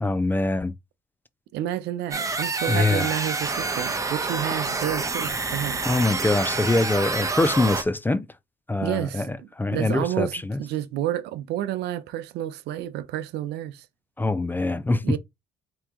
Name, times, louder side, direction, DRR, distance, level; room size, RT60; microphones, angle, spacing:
voice 1, 0.0-0.7 2.7-3.1 5.9-8.3 8.7-10.6 14.2-15.2, left 2 dB, 10° left, 0.4 m, -24 dB
voice 2, 1.5-5.8 8.8-13.9 15.0-15.2, right 12 dB, 80° right, 0.7 m, -30 dB
sound 1, 2.1-7.8, right 3 dB, 20° right, 0.9 m, -28 dB
4.4 x 3.0 x 3.6 m
cardioid pair, 110°, 17 cm